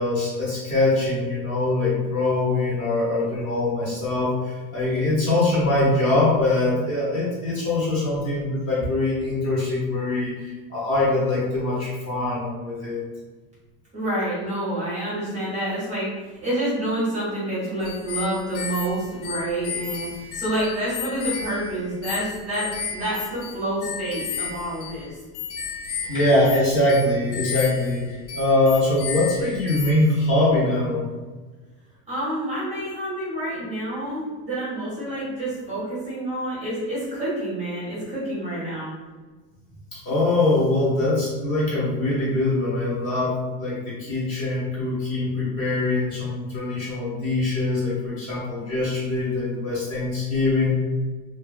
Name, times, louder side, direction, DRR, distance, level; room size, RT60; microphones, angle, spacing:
voice 1, 0.0-13.0 26.0-28.0 28.3-31.0 39.9-50.8, left 2 dB, 30° left, -7 dB, 0.7 m, -23 dB
voice 2, 13.9-25.2 32.1-38.9, right 1 dB, 15° right, -9 dB, 0.6 m, -28 dB
sound 1, 17.8-30.3, left 6 dB, 75° left, 0.5 m, -34 dB
2.9 x 2.1 x 2.3 m, 1.3 s
cardioid pair, 180°, 42 cm